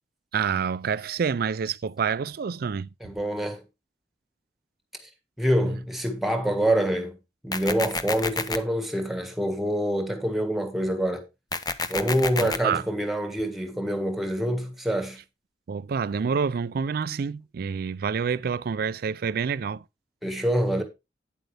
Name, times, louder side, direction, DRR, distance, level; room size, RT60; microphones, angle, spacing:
voice 1, 0.3-2.9 5.6-5.7 12.4-12.8 15.7-19.8, right 6 dB, 60° right, 0.4 m, -27 dB
voice 2, 3.0-3.6 5.4-7.2 7.4-11.2 11.9-15.2 20.2-20.8, equal, ahead, 1.6 m, -26 dB
sound 1, 7.5-8.6 11.5-12.6, left 4 dB, 25° left, 0.7 m, -29 dB
9.4 x 7.9 x 3.3 m
head